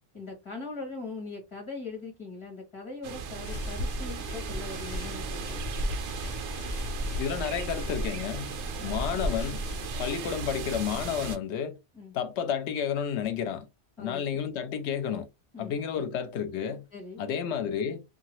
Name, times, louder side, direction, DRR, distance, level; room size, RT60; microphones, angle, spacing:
voice 1, 0.1-5.6 8.8-9.0 11.9-12.1 14.0-14.2 15.5-16.0 16.9-17.2, left 3 dB, 25° left, 1.4 m, -41 dB
sound 1, 3.0-11.4, right 5 dB, 90° right, 0.9 m, -37 dB
sound 2, 3.4-10.1, left 1 dB, 55° left, 0.8 m, -35 dB
voice 2, 7.2-8.6 8.8-9.6 10.0-11.8 12.1-13.7 14.0-15.3 15.6-16.9 17.2-18.0, left 8 dB, 80° left, 0.9 m, -31 dB
2.8 x 2.4 x 2.9 m
omnidirectional pair, 1.1 m